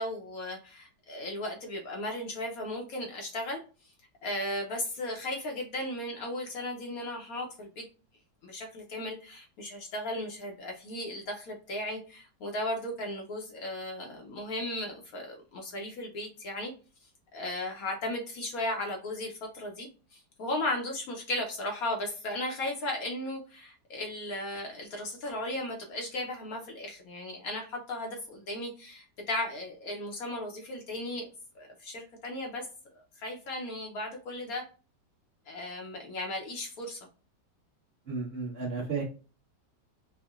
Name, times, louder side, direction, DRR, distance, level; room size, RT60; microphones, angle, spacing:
voice 1, 0.0-3.6 4.2-7.9 8.4-16.7 17.3-31.3 31.5-32.7 33.2-34.6 35.5-37.0, left 1 dB, 65° left, 1 dB, 1.0 m, -36 dB
voice 2, 38.1-39.0, right 4 dB, 40° right, -6 dB, 1.1 m, -33 dB
4.6 x 2.1 x 2.3 m, 0.35 s
omnidirectional pair, 1.8 m